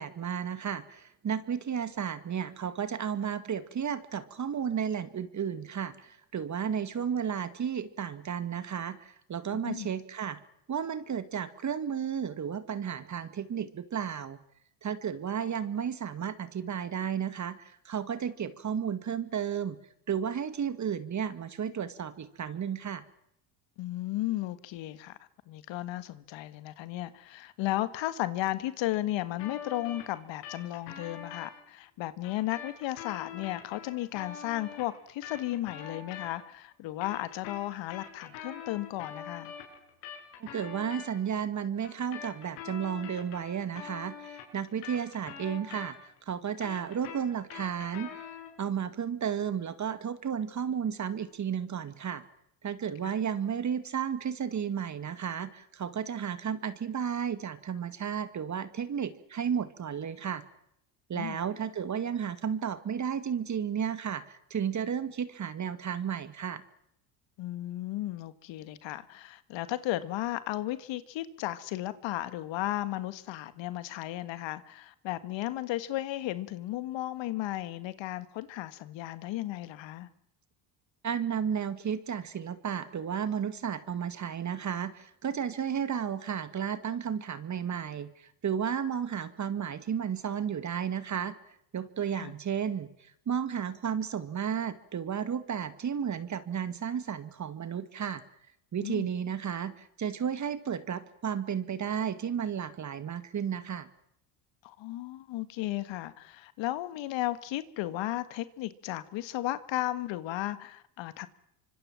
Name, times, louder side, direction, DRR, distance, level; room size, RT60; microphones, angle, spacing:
voice 1, 0.0-10.4 10.7-14.4 14.8-19.8 20.1-23.0 40.4-48.1 48.6-52.2 52.6-60.4 61.1-66.6 81.0-91.3 91.7-98.2 98.7-103.9, right 8 dB, 35° right, 2.1 m, -33 dB
voice 2, 23.8-39.5 53.0-53.1 61.1-61.4 67.4-80.1 92.1-92.3 98.8-99.1 104.6-111.3, left 15 dB, 65° left, 1.8 m, -34 dB
sound 1, 29.4-31.5 32.2-36.6 36.9-41.1 41.8-46.2 46.5-48.6, left 7 dB, 90° left, 7.9 m, -44 dB
25.5 x 25.0 x 7.4 m
supercardioid pair, 100°, 47 cm